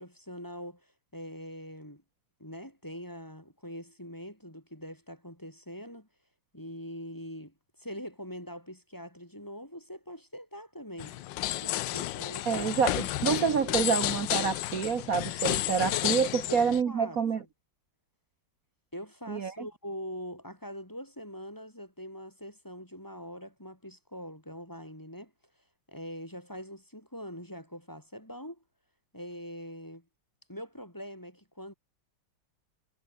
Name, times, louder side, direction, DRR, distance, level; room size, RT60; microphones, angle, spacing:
voice 1, 0.0-2.0 2.4-6.1 6.5-11.2 11.6-12.7 13.3-13.9 16.5-17.2 18.9-25.3 25.9-28.6 29.1-30.0 30.5-31.7, equal, 10° left, 3.8 m, -43 dB
sound 1, 11.0-16.8, left 14 dB, 70° left, 1.3 m, -31 dB
voice 2, 12.5-17.4 19.3-19.7, right 6 dB, 45° right, 1.7 m, -28 dB
omnidirectional pair, 2.2 m